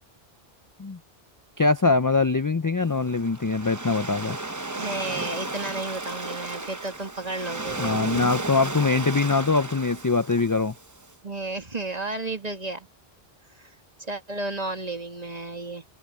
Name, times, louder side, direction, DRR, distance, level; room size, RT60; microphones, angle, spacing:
voice 1, 1.6-4.4 7.8-10.7, left 3 dB, 30° left, 0.4 m, -23 dB
Waves surf, 2.8-11.1, right 2 dB, 20° right, 0.9 m, -34 dB
voice 2, 4.8-7.9 11.2-12.9 13.5-13.7 14.0-15.8, right 2 dB, 40° right, 2.4 m, -32 dB
omnidirectional pair, 1.1 m